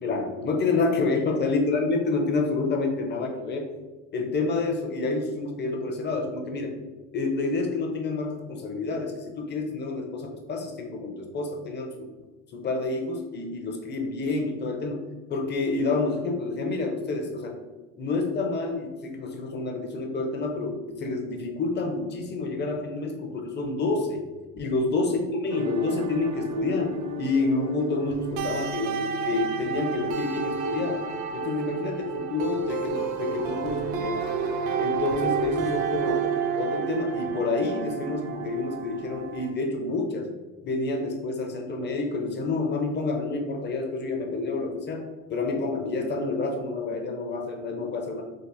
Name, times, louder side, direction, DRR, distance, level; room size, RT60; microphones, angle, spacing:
voice 1, 0.0-3.7 4.1-6.7 7.1-12.1 12.5-15.0 15.3-17.6 18.0-24.2 24.5-31.0 31.3-34.2 34.8-36.3 36.5-40.3 40.6-48.2, left 3 dB, 30° left, 3 dB, 0.6 m, -28 dB
Atmospheric guitar solo, 25.5-39.5, right 6 dB, 50° right, 0.5 m, -31 dB
3.4 x 2.1 x 2.7 m, 1.2 s
hypercardioid pair, 75°, 38 cm